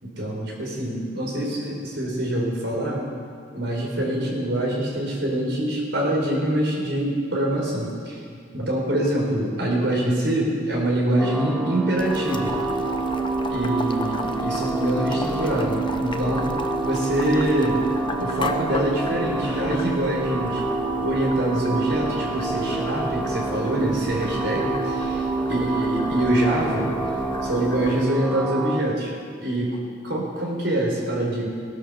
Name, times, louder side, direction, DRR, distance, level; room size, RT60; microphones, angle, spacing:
voice 1, 0.0-3.0 3.5-8.2 8.5-12.6 13.5-16.5 16.8-17.8 18.2-20.6 21.0-26.9 27.4-29.1 29.4-31.5, right 1 dB, 75° right, -2 dB, 4.3 m, -25 dB
sound 1, 11.2-28.8, right 3 dB, ahead, 1.0 m, -27 dB
Boiling, 12.0-28.0, left 2 dB, 25° left, 0.8 m, -35 dB
19.0 x 10.5 x 6.9 m, 2.1 s
head